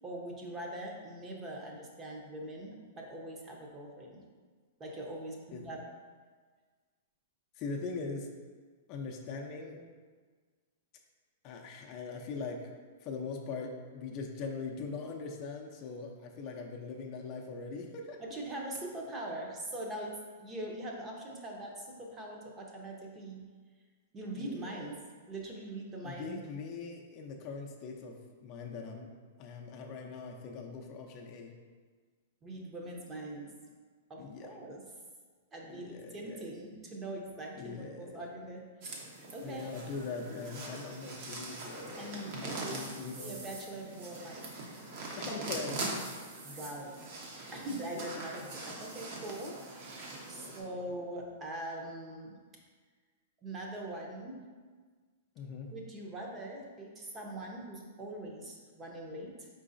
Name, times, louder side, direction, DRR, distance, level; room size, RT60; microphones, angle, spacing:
voice 1, 0.0-4.2 4.8-5.8 18.2-23.4 24.1-25.0 25.3-26.4 32.4-33.5 34.1-34.8 35.5-38.6 39.0-39.1 39.3-39.7 42.0-42.9 43.2-44.5 46.4-46.9 47.5-52.4 53.4-54.4 55.7-59.5, right 1 dB, 20° right, -1 dB, 0.8 m, -42 dB
voice 2, 7.6-8.3 8.9-9.8 11.4-12.6 13.0-18.2 24.3-24.9 26.0-29.1 29.4-31.5 34.2-34.5 35.7-36.4 37.6-38.2 39.4-43.3 45.1-45.8 48.1-48.2 50.3-50.8 55.4-55.7, left 4 dB, 40° left, 1 dB, 0.5 m, -41 dB
sound 1, 38.8-50.6, right 2 dB, 50° right, 0.9 m, -42 dB
4.7 x 3.8 x 2.6 m, 1.5 s
hypercardioid pair, 130°, 0 cm